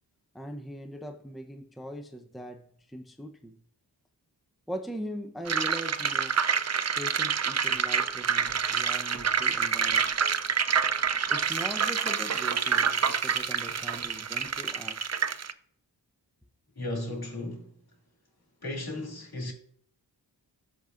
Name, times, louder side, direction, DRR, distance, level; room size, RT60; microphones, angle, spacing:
voice 1, 0.3-3.6 4.7-6.4 7.0-10.1 11.3-15.0, equal, ahead, 0.8 m, -40 dB
sound 1, 5.5-15.5, right 6 dB, 40° right, 0.6 m, -27 dB
voice 2, 16.8-17.7 18.6-19.5, left 1 dB, 55° left, 2.7 m, -35 dB
13.0 x 5.2 x 2.6 m
cardioid pair, 45°, 43 cm